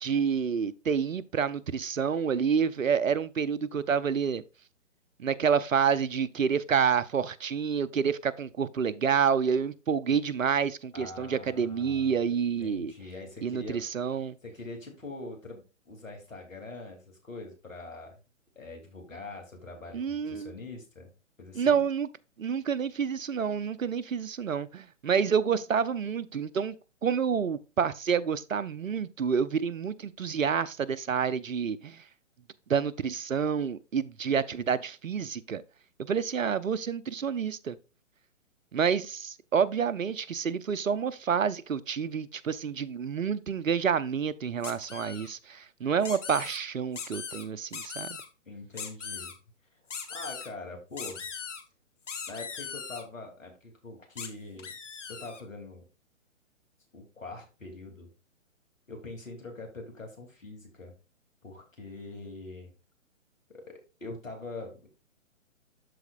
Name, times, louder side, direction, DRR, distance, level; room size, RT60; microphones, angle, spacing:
voice 1, 0.0-4.4 5.2-12.9 13.4-14.4 19.9-20.5 21.5-22.1 22.4-26.8 27.0-32.0 32.7-35.6 36.0-37.8 38.7-48.1, right 6 dB, 85° right, 0.7 m, -28 dB
voice 2, 10.9-12.3 12.6-13.8 14.4-18.2 18.5-21.1 21.4-21.8 48.5-49.4 50.1-51.2 52.3-54.7 55.1-55.8 56.9-58.1 58.9-60.9 61.4-62.7 63.5-64.9, left 2 dB, 85° left, 3.1 m, -43 dB
sound 1, 44.6-45.3 46.0-46.6 46.9-47.4 47.7-48.3 48.8-49.3 49.9-50.5 51.0-51.6 52.1-53.0 54.2-54.3 54.6-55.4, left 6 dB, 65° left, 1.5 m, -39 dB
12.5 x 4.2 x 2.5 m
figure-of-eight pair, 135°, 38 cm